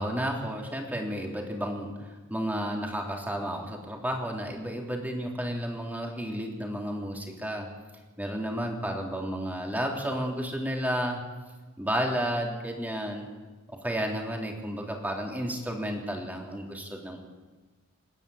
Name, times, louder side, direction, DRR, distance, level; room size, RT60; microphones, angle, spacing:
voice 1, 0.0-7.7 8.2-11.2 11.8-13.3 13.7-17.2, equal, 10° right, 0 dB, 3.3 m, -32 dB
30.0 x 10.0 x 8.8 m, 1.3 s
head